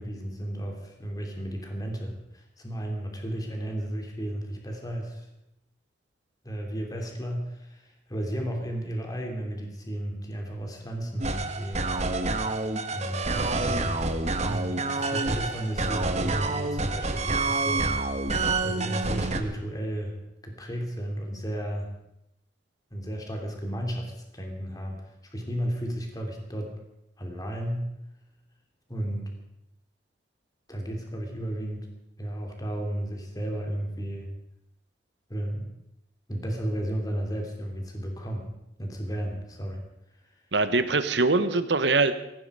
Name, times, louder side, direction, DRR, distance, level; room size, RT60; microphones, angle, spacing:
voice 1, 0.0-5.3 6.4-11.9 12.9-14.0 14.5-18.0 18.3-20.2 20.4-21.9 22.9-26.7 27.2-27.9 28.9-29.3 30.7-31.9 32.2-34.3 35.3-35.7 36.3-38.5 38.8-39.8 40.2-40.3, right 1 dB, 20° left, 2 dB, 2.8 m, -33 dB
sound 1, 11.2-19.4, right 3 dB, 40° right, 1.3 m, -28 dB
voice 2, 40.5-42.1, right 3 dB, 75° right, 11 dB, 1.2 m, -23 dB
18.0 x 16.0 x 4.9 m, 0.85 s
head